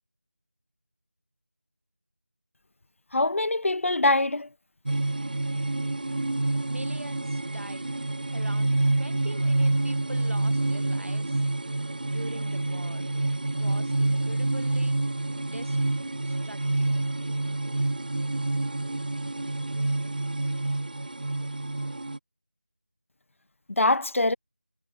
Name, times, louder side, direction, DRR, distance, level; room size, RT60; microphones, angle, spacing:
voice 1, 3.1-4.5 23.8-24.4, left 2 dB, 80° left, 0.5 m, -23 dB
sound 1, 4.9-22.2, right 2 dB, 40° right, 2.0 m, -28 dB
voice 2, 6.6-7.9 8.3-11.4 12.1-13.1 13.6-15.0 15.4-15.8 16.2-17.0, right 1 dB, 85° right, 5.5 m, -43 dB
figure-of-eight pair, 175°, 7 cm